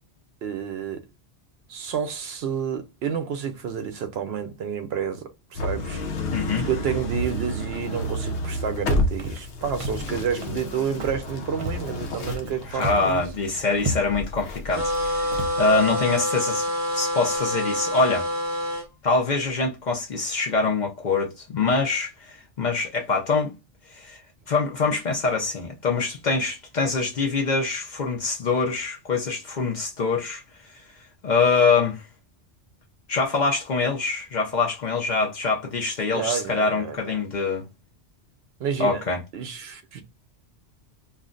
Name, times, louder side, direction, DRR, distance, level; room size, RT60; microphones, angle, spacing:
voice 1, 0.4-1.0 1.7-6.0 6.6-13.2 36.1-37.2 38.6-39.0 39.3-40.0, right 7 dB, 70° right, 0.8 m, -29 dB
sound 1, 5.5-15.8, left 1 dB, 80° left, 0.9 m, -31 dB
voice 2, 6.3-6.7 12.7-18.3 19.0-23.5 23.9-24.2 24.5-30.4 31.2-32.0 33.1-37.6 38.8-39.2, left 4 dB, 50° left, 0.6 m, -24 dB
Walk footsteps, 9.2-9.5 9.8-10.1 10.4-10.7 11.0-11.3 11.6-12.5 12.8-13.1 13.4-13.5 13.8-14.3 14.9-15.0 15.3-15.6, right 1 dB, 45° right, 0.4 m, -32 dB
sound 2, 14.7-18.9, left 1 dB, 15° right, 0.7 m, -26 dB
2.5 x 2.1 x 3.6 m
omnidirectional pair, 1.1 m